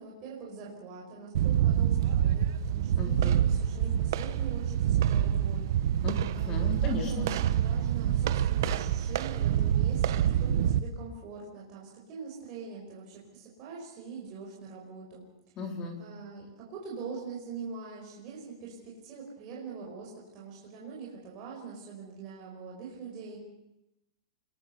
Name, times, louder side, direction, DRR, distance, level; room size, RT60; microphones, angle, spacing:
voice 1, 0.0-5.7 6.3-15.2 16.0-23.4, right 5 dB, 25° right, -4 dB, 5.1 m, -43 dB
sound 1, 1.3-10.8, right 10 dB, 45° right, 1.1 m, -26 dB
voice 2, 3.0-3.4 6.0-7.3 15.6-16.0, left 1 dB, 20° left, 4 dB, 3.6 m, -35 dB
28.5 x 22.0 x 6.9 m, 0.91 s
supercardioid pair, 180°, 3 cm